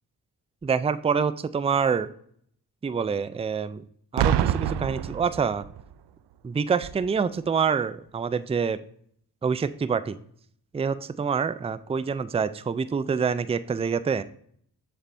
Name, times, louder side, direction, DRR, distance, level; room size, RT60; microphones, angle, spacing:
voice 1, 0.6-2.1 2.8-3.8 4.1-5.6 6.4-8.8 9.4-10.2 10.7-14.2, right 6 dB, 15° right, 14 dB, 0.4 m, -26 dB
Boom, 4.2-5.9 6.8-7.1, right 10 dB, 85° right, 0.5 m, -26 dB
7.2 x 6.9 x 2.6 m, 0.64 s
cardioid pair, 70°, 40 cm